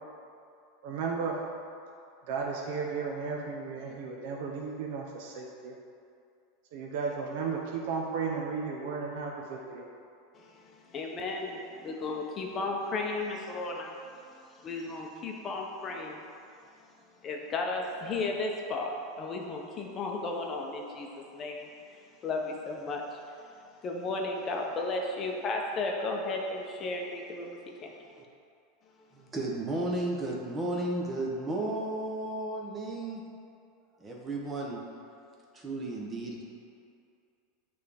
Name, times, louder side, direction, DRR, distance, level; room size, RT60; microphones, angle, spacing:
voice 1, 0.8-1.4 2.3-5.8 6.7-9.9, right 5 dB, 65° right, -1 dB, 0.7 m, -34 dB
voice 2, 10.3-14.0 14.3-16.2 17.2-23.4 23.8-27.9, left 3 dB, 30° left, 1 dB, 0.7 m, -34 dB
voice 3, 29.1-33.2 34.0-34.8 35.5-36.4, right 2 dB, 15° right, -2 dB, 0.8 m, -33 dB
9.0 x 3.4 x 3.4 m, 2.5 s
supercardioid pair, 150°, 0 cm